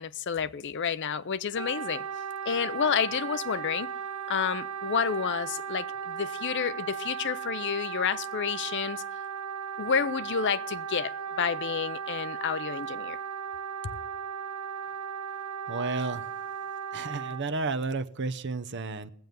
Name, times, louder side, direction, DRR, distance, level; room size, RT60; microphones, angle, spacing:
voice 1, 0.0-2.1 2.4-3.9 4.3-9.0 9.8-13.2, left 7 dB, 55° left, 0.5 m, -30 dB
Wind instrument woodwind instrument, 1.5-17.4, right 7 dB, 85° right, 1.2 m, -36 dB
voice 2, 15.7-16.2 16.9-19.1, right 3 dB, 55° right, 0.8 m, -32 dB
19.0 x 7.8 x 5.4 m
head